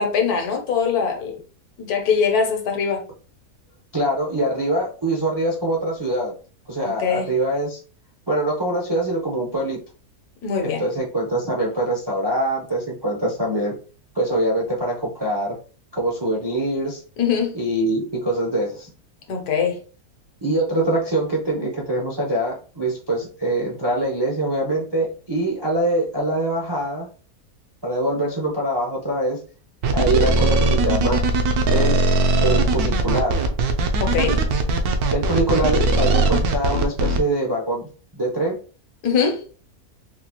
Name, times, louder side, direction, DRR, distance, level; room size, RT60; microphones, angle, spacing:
voice 1, 0.0-1.4 1.8-3.0 6.8-7.3 10.4-10.8 17.2-17.6 19.3-19.8 34.0-34.4 39.0-39.4, left 6 dB, 75° left, 1.3 m, -22 dB
voice 2, 3.9-6.3 6.7-7.8 8.3-9.8 10.6-13.7 14.1-15.6 15.9-17.0 17.5-18.9 20.4-27.1 27.8-29.4 29.9-31.2 31.7-32.0 32.4-33.5 35.1-38.6, right 1 dB, 35° right, 0.4 m, -24 dB
sound 1, 29.8-37.2, right 2 dB, 75° right, 1.1 m, -19 dB
4.0 x 2.4 x 2.9 m
omnidirectional pair, 1.6 m